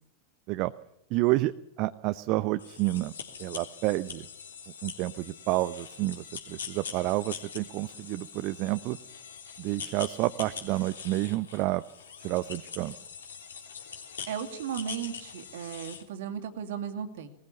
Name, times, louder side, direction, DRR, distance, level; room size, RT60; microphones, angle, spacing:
voice 1, 1.1-3.1 3.4-4.3 4.8-9.0 9.6-11.8 12.2-12.9, right 19 dB, 40° right, 12 dB, 0.7 m, -29 dB
sound 1, 2.6-16.0, left 6 dB, 65° left, 3.2 m, -43 dB
voice 2, 14.3-17.3, right 8 dB, 55° right, 7 dB, 2.5 m, -35 dB
20.5 x 20.0 x 7.2 m, 0.78 s
figure-of-eight pair, 90°, 0 cm